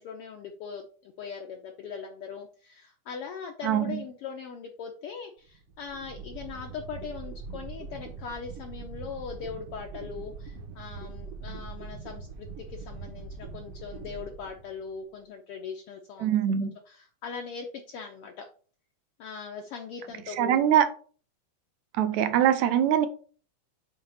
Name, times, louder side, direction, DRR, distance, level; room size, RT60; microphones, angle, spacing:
voice 1, 0.0-18.5 19.2-20.6, left 6 dB, 70° left, 1.4 m, -40 dB
voice 2, 3.6-4.0 16.2-16.8 20.4-20.8 22.0-23.1, right 10 dB, 85° right, 2.1 m, -23 dB
sound 1, 5.5-15.0, right 4 dB, 60° right, 1.8 m, -42 dB
7.8 x 2.9 x 5.5 m
omnidirectional pair, 3.3 m